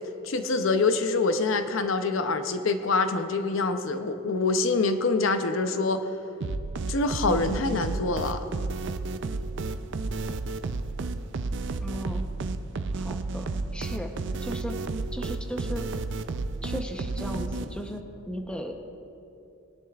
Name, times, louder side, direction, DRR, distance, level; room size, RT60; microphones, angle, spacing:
voice 1, 0.2-6.1 6.9-8.4, left 3 dB, 65° left, 8 dB, 0.6 m, -25 dB
sound 1, 6.4-18.0, right 3 dB, 60° right, 0.5 m, -32 dB
voice 2, 11.8-12.3 12.9-14.1 14.4-14.8 15.1-15.9 16.6-18.7, equal, 5° left, 3 dB, 0.7 m, -36 dB
20.5 x 10.5 x 2.4 m, 2.8 s
head